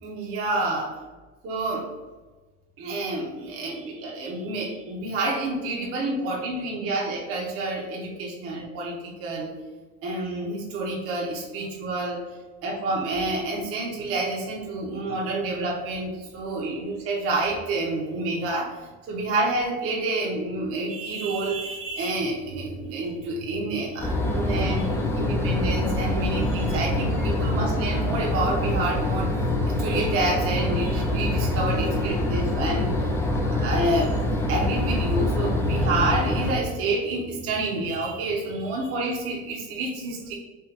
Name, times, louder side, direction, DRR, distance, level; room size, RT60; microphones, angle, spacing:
voice 1, 0.0-1.0 1.4-1.9 2.8-9.5 10.0-12.2 12.6-18.8 19.0-32.9 33.5-40.3, right 2 dB, 35° right, -2 dB, 1.0 m, -28 dB
sound 1, 24.0-36.5, left 1 dB, 5° left, 0.4 m, -25 dB
3.8 x 3.1 x 4.2 m, 1.2 s
supercardioid pair, 135°, 38 cm